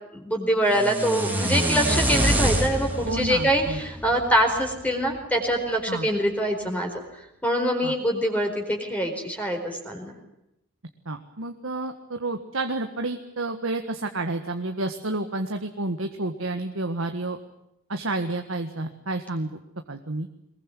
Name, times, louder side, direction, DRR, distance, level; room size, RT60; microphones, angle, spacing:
voice 1, 0.1-6.9 7.4-10.1, equal, 5° left, 2 dB, 4.5 m, -24 dB
sound 1, 0.7-4.8, right 1 dB, 10° right, 3.8 m, -26 dB
voice 2, 3.0-3.8 5.9-6.1 7.8-7.9 11.1-17.4 17.9-19.5 19.9-20.3, right 2 dB, 80° right, 6 dB, 1.7 m, -30 dB
23.0 x 21.5 x 9.2 m, 0.83 s
head